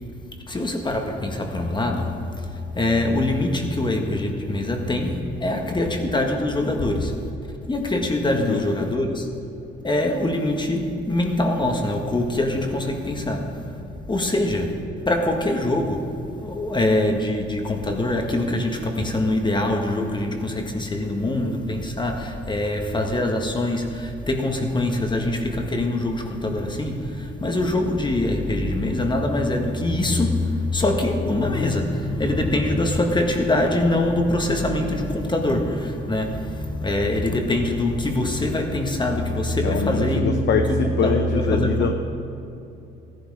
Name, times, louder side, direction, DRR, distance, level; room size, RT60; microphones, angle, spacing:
voice 1, 0.5-2.2 2.7-7.2 7.7-9.3 9.8-13.6 13.9-16.1 16.4-41.9, left 1 dB, 25° left, 1.6 m, -23 dB
voice 2, 39.5-41.9, left 6 dB, 65° left, 0.8 m, -24 dB
14.5 x 11.0 x 4.9 m
cardioid pair, 90°, 20 cm